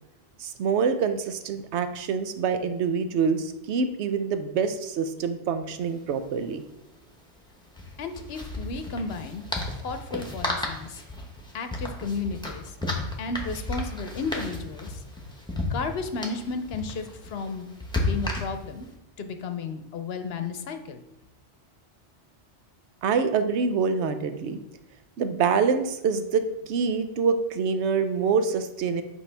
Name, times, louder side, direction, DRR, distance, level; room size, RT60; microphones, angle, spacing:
voice 1, 0.4-6.6 23.0-24.6 25.2-29.0, right 5 dB, 75° right, 10 dB, 0.9 m, -26 dB
sound 1, 5.7-5.8 6.0-6.2 7.7-18.9, left 2 dB, 5° left, 0.9 m, -33 dB
voice 2, 8.0-9.4 9.8-11.0 11.5-12.7 13.2-15.0 15.7-17.7 18.0-18.9 19.2-21.0, left 4 dB, 65° left, 8 dB, 0.9 m, -33 dB
8.5 x 4.7 x 3.3 m, 0.86 s
omnidirectional pair, 1.2 m